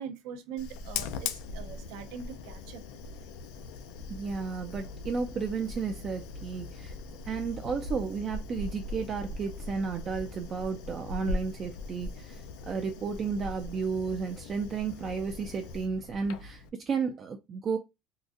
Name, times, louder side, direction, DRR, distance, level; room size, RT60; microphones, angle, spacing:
voice 1, 0.0-2.8, right 7 dB, 75° right, 0.6 m, -42 dB
Fire, 0.6-16.7, left 4 dB, 85° left, 0.4 m, -40 dB
sound 1, 4.0-10.4, right 1 dB, 10° left, 0.6 m, -47 dB
voice 2, 4.1-6.9 7.3-17.8, right 5 dB, 30° right, 0.3 m, -33 dB
3.8 x 2.4 x 2.4 m
cardioid pair, 165°, 0 cm